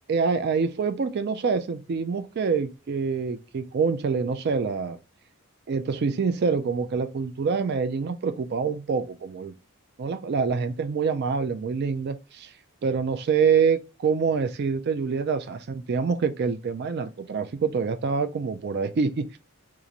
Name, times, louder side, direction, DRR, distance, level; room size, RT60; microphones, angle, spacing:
voice 1, 0.1-5.0 5.7-9.5 10.0-12.5 12.8-19.4, right 5 dB, 45° right, 0.3 m, -26 dB
2.9 x 2.5 x 3.9 m
head